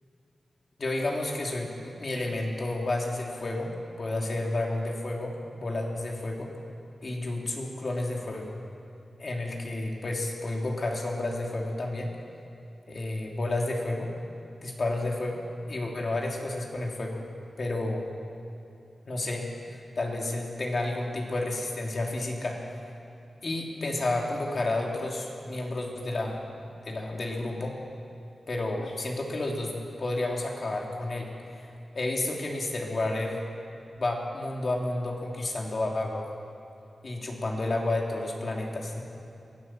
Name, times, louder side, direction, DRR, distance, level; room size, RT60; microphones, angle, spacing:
voice 1, 0.8-6.5 7.0-8.5 9.2-12.1 12.9-14.1 14.6-15.4 15.7-17.2 17.6-18.0 19.0-19.5 19.9-22.8 23.4-27.8 28.5-31.7 31.9-33.4 34.0-36.2 37.0-39.0, left 2 dB, 50° left, 0 dB, 3.3 m, -31 dB
23.5 x 16.5 x 7.6 m, 2.7 s
wide cardioid pair, 115°, 0 cm